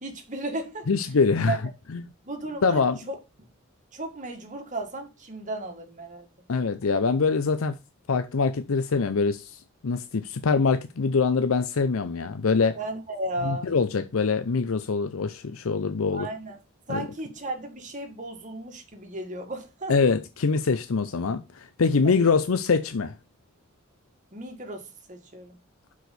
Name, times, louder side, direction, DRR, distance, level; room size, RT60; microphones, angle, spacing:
voice 1, 0.0-0.9 1.5-1.6 2.2-3.5 3.9-6.3 12.7-13.7 16.1-16.6 16.9-20.0 22.0-22.3 24.3-25.6, right 2 dB, 35° right, 1.7 m, -35 dB
voice 2, 0.9-1.6 1.9-2.0 2.6-3.0 6.5-7.8 8.1-12.8 13.4-16.3 16.9-17.0 19.9-23.1, left 4 dB, 80° left, 0.6 m, -24 dB
6.0 x 4.9 x 6.7 m
head